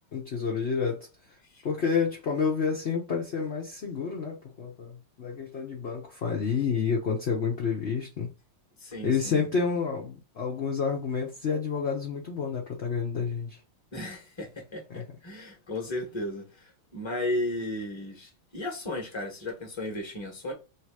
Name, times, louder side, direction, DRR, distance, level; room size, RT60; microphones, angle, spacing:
voice 1, 0.1-1.1 1.6-8.3 9.0-13.6 14.9-15.0, left 5 dB, 55° left, 0.7 m, -29 dB
voice 2, 8.8-9.4 13.9-20.5, left 1 dB, 15° left, 1.0 m, -35 dB
3.3 x 3.1 x 4.8 m
omnidirectional pair, 2.3 m